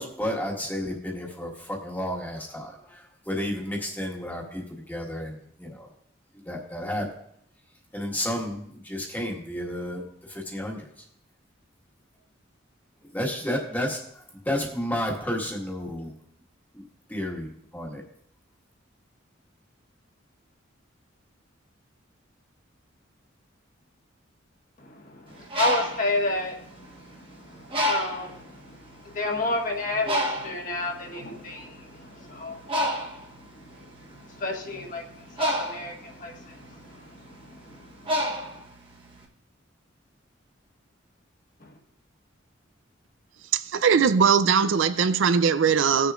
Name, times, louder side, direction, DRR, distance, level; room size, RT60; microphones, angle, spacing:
voice 1, 0.0-5.9 6.4-7.1 7.9-10.9 13.1-14.0 14.4-16.1 16.7-16.8 17.1-18.0, left 1 dB, 10° left, 1.5 m, -31 dB
voice 2, 25.3-26.9 27.4-28.8 29.0-32.7 34.3-36.8, left 2 dB, 40° left, 1.5 m, -31 dB
Bird, 25.3-27.2 27.7-28.4 29.1-29.2 29.5-39.2, equal, 25° right, 1.2 m, -30 dB
voice 3, 43.5-46.1, right 6 dB, 75° right, 0.4 m, -20 dB
19.0 x 6.9 x 2.4 m
head